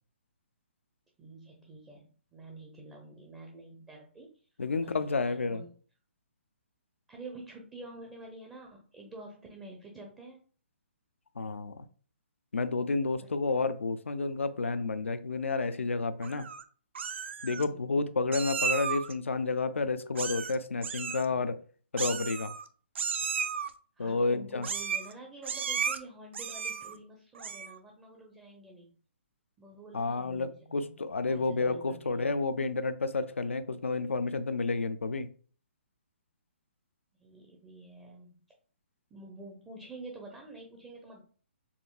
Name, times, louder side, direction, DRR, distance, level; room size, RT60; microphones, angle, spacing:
voice 1, 1.2-4.4 4.8-5.7 7.1-10.4 13.2-13.7 17.5-17.9 24.0-28.9 29.6-32.3 37.2-38.4 39.1-41.2, right 2 dB, 10° right, 0.5 m, -48 dB
voice 2, 4.6-5.6 11.4-11.8 12.5-16.5 17.4-21.5 21.9-22.5 24.0-24.7 29.9-35.3, left 3 dB, 90° left, 0.4 m, -30 dB
Meow, 16.2-16.6 16.9-17.6 18.3-19.1 20.1-20.6 20.8-21.2 22.0-22.7 22.9-23.7 24.6-25.1 25.4-26.0 26.3-26.9 27.3-27.8, right 6 dB, 70° right, 0.4 m, -34 dB
4.2 x 2.6 x 2.3 m
hypercardioid pair, 140°, 7 cm